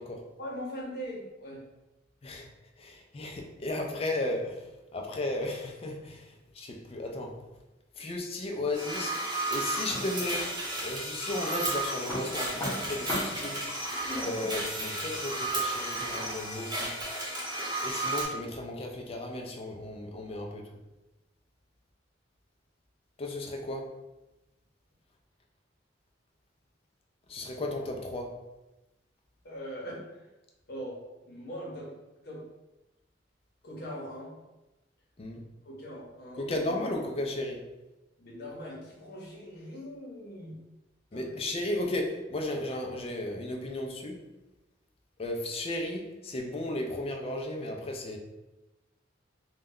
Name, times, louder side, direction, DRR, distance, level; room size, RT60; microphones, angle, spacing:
voice 1, 0.4-1.7 29.4-30.3 30.7-31.0 31.3-32.0 32.2-32.4 33.6-34.4 35.6-36.5 38.2-40.6 41.1-41.5, equal, 55° left, -3 dB, 0.8 m, -41 dB
voice 2, 2.8-4.6 4.9-6.2 6.6-7.3 8.0-9.2 9.5-10.5 10.8-13.6 14.1-16.9 17.8-20.7 23.2-23.9 27.3-28.3 35.2-35.4 36.4-37.6 41.1-44.2 45.2-48.2, left 1 dB, 30° left, 1 dB, 0.4 m, -34 dB
sound 1, 8.7-18.2, right 1 dB, 25° right, 0.6 m, -33 dB
sound 2, 9.9-10.9 11.3-16.4, equal, 10° left, 0.9 m, -39 dB
2.2 x 2.1 x 3.5 m, 0.99 s
head